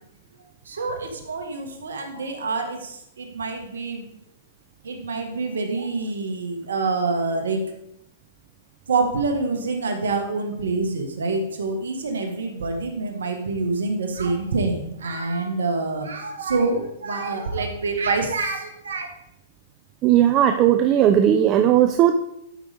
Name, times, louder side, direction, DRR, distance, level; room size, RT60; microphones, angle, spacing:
voice 1, 0.6-4.0 4.8-7.6 8.9-19.1, right 3 dB, 85° right, 4 dB, 1.4 m, -26 dB
voice 2, 20.0-22.1, right 11 dB, 35° right, 7 dB, 0.5 m, -17 dB
12.0 x 5.2 x 3.4 m, 0.78 s
hypercardioid pair, 130°, 0 cm